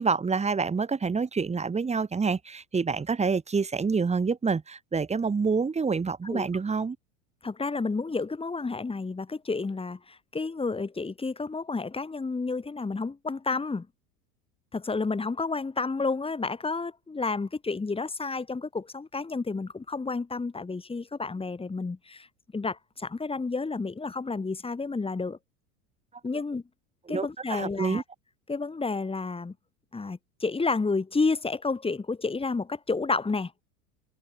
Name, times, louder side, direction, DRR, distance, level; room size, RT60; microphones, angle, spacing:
voice 1, 0.0-7.0 27.1-28.0, right 5 dB, 15° right, 1.4 m, -27 dB
voice 2, 7.4-13.9 14.7-22.3 22.5-25.4 26.2-26.6 27.1-28.0 28.5-29.5 29.9-33.5, left 4 dB, 10° left, 2.2 m, -30 dB
hypercardioid pair, 95°, 45 cm